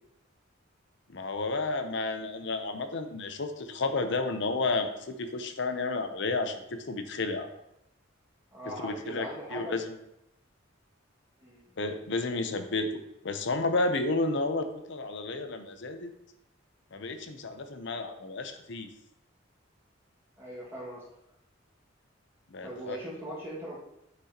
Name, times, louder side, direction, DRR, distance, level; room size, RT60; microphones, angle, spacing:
voice 1, 1.1-7.5 8.8-9.3 9.5-10.0 11.8-16.1 16.9-18.9 22.5-23.0, left 3 dB, 60° left, 8 dB, 0.7 m, -31 dB
voice 2, 8.5-9.7 11.4-11.7 20.4-21.0 22.6-23.8, equal, 15° right, -7 dB, 1.9 m, -40 dB
8.3 x 6.1 x 2.9 m, 0.83 s
head